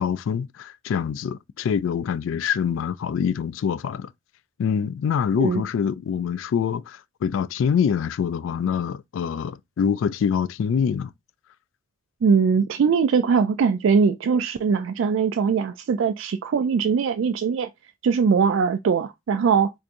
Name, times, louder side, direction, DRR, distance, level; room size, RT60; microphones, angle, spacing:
voice 1, 0.0-4.1 4.6-11.1, left 7 dB, 80° left, 0.3 m, -25 dB
voice 2, 12.2-17.7 18.0-19.7, right 6 dB, 75° right, 0.3 m, -21 dB
4.6 x 2.7 x 2.5 m
head